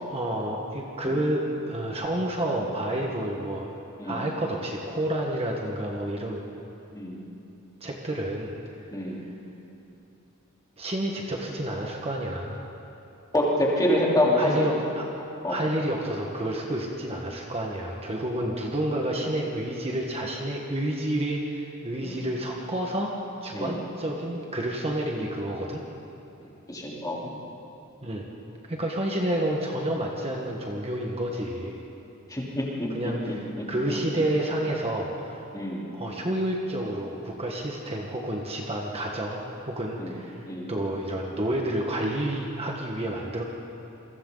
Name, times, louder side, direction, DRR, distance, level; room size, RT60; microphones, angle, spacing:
voice 1, 0.1-3.7 4.0-6.4 7.8-8.5 8.8-8.9 10.8-12.7 14.3-15.0 15.5-23.1 23.4-25.8 28.0-28.3 28.7-31.8 32.9-35.4 35.9-43.4, right 1 dB, 25° right, -1 dB, 1.6 m, -29 dB
voice 2, 6.9-7.2 8.9-9.3 13.3-14.7 15.4-15.6 22.0-22.2 23.5-23.8 26.7-27.3 32.3-32.9 33.3-33.4 35.5-35.9 40.0-40.1 40.5-40.7, left 1 dB, 15° left, -5 dB, 3.9 m, -26 dB
29.0 x 23.5 x 4.0 m, 3.0 s
head